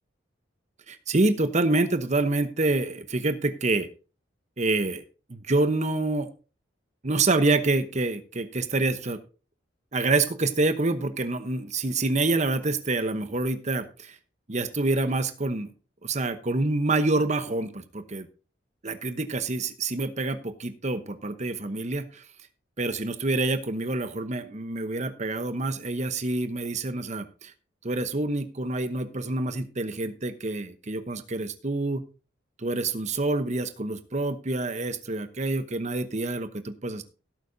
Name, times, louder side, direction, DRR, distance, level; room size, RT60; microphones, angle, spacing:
voice 1, 0.9-3.9 4.6-5.0 5.3-6.3 7.0-9.2 9.9-14.2 14.5-15.7 16.0-18.3 18.8-22.2 22.8-27.5 27.8-32.0 32.6-37.0, right 2 dB, 40° right, 10 dB, 1.0 m, -27 dB
17.0 x 8.3 x 2.7 m, 0.34 s
head